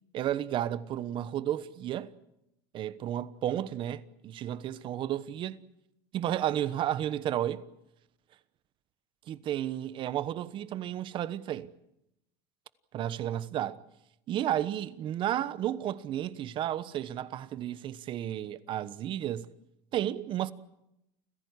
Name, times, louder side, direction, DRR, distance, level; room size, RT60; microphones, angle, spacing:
voice 1, 0.1-2.1 2.7-5.6 6.1-7.6 9.3-11.7 12.9-13.8 14.3-19.5 19.9-20.5, right 11 dB, 40° right, 1.2 m, -32 dB
29.5 x 16.0 x 9.8 m
cardioid pair, 150°, 13 cm